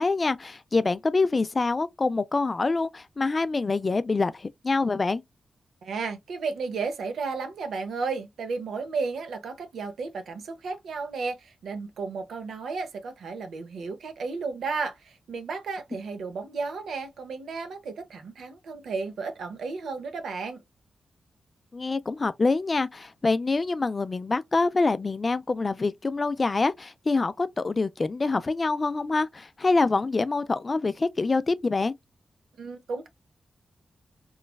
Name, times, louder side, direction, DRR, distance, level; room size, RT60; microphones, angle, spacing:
voice 1, 0.0-5.2 21.7-31.9, left 3 dB, 40° left, 0.3 m, -25 dB
voice 2, 5.8-20.6 32.6-33.1, right 4 dB, 85° right, 0.6 m, -33 dB
3.1 x 2.2 x 2.3 m
cardioid pair, 65°, 0 cm